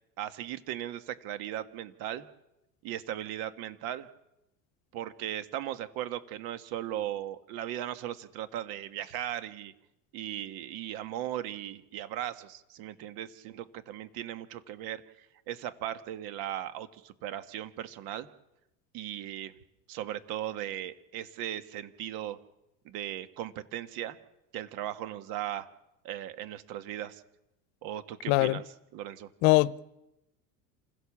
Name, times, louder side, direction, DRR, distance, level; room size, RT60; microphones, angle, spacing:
voice 1, 0.2-2.3 2.8-4.1 4.9-9.7 10.1-18.3 18.9-19.5 19.9-22.4 22.9-24.2 24.5-25.7 26.0-27.2 27.8-28.6 28.9-29.3, right 12 dB, 65° right, 1.7 m, -37 dB
voice 2, 28.3-28.6 29.4-29.8, left 20 dB, 75° left, 0.9 m, -22 dB
27.0 x 16.5 x 7.3 m
supercardioid pair, 115°, 40 cm